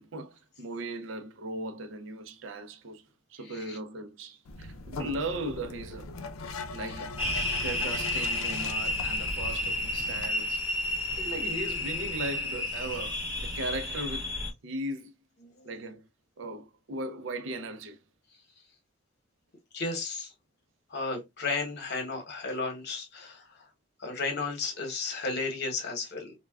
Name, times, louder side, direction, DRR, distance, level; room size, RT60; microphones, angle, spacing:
voice 1, 0.0-3.0 3.3-6.1 6.7-7.1 7.6-10.6 11.2-15.1 15.6-16.1 16.4-18.0, right 2 dB, 65° right, 0.5 m, -37 dB
sound 1, 4.4-10.3, left 3 dB, 80° left, 0.5 m, -40 dB
sound 2, 7.2-14.5, left 2 dB, 10° right, 0.9 m, -31 dB
voice 2, 19.7-20.3 20.9-23.4 24.0-26.3, left 3 dB, 55° left, 1.0 m, -33 dB
3.3 x 2.1 x 2.2 m
head